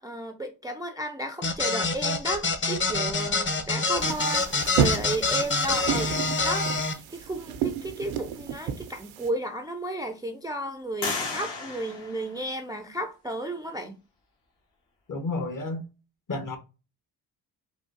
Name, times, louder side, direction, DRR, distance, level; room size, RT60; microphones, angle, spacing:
voice 1, 0.0-6.2 6.4-14.0, right 1 dB, 10° right, 0.4 m, -33 dB
sound 1, 1.4-6.9, left 3 dB, 25° left, 0.7 m, -26 dB
sound 2, 4.0-9.3, right 8 dB, 80° right, 0.6 m, -31 dB
sound 3, 8.7-8.8 9.4-10.1 11.0-13.0, left 4 dB, 60° left, 1.4 m, -35 dB
voice 2, 15.1-15.8 16.3-16.6, left 2 dB, 45° left, 1.1 m, -31 dB
3.7 x 2.4 x 2.5 m
supercardioid pair, 50°, 46 cm